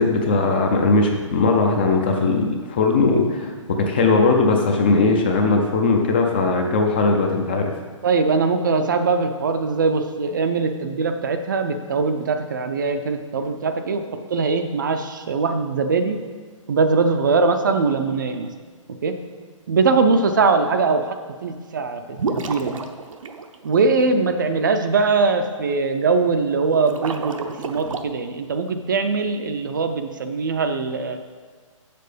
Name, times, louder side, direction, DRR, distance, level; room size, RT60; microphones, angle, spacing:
voice 1, 0.0-7.7, left 3 dB, 20° left, 2 dB, 0.5 m, -19 dB
voice 2, 8.0-16.2 16.7-18.5 19.0-19.2 19.7-21.2 21.4-22.0 22.3-22.8 23.6-31.2, right 4 dB, 35° right, 7 dB, 0.5 m, -21 dB
sound 1, 22.2-24.0 26.6-28.0, right 4 dB, 70° right, 0.8 m, -30 dB
7.5 x 6.8 x 5.0 m, 1.5 s
hypercardioid pair, 170°, 17 cm